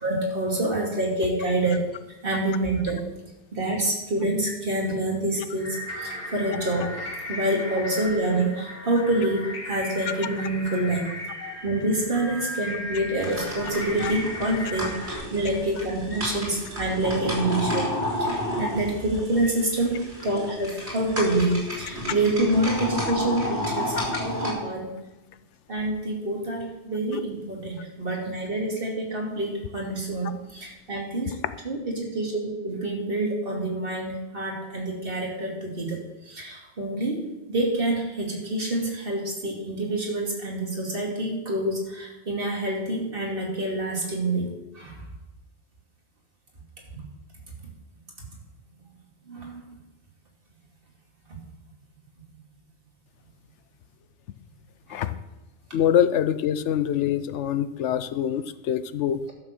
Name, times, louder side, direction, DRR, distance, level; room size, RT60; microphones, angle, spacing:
voice 1, 0.0-1.8 2.2-3.0 3.5-11.1 11.6-17.9 18.2-24.9 25.7-31.3 31.6-36.0 36.3-37.2 37.5-45.0 49.3-49.6 54.9-55.0, right 1 dB, 50° right, -2 dB, 2.8 m, -27 dB
sound 1, 5.6-15.2, left 1 dB, 55° left, 2.1 m, -36 dB
sound 2, 13.2-24.5, left 1 dB, 65° right, 4.1 m, -31 dB
voice 2, 55.7-59.2, left 9 dB, 80° left, 13 dB, 0.9 m, -25 dB
12.0 x 6.8 x 6.6 m, 1.0 s
omnidirectional pair, 1.2 m